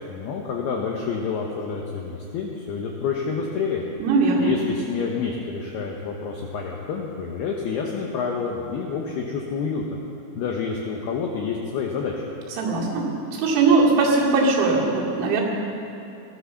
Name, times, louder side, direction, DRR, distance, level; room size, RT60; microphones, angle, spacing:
voice 1, 0.1-3.8 4.4-10.0 10.4-12.1, left 5 dB, 80° left, 0 dB, 2.3 m, -28 dB
voice 2, 4.0-4.5 12.6-15.4, right 3 dB, 90° right, -5 dB, 5.1 m, -20 dB
16.5 x 12.5 x 7.0 m, 2.8 s
omnidirectional pair, 6.0 m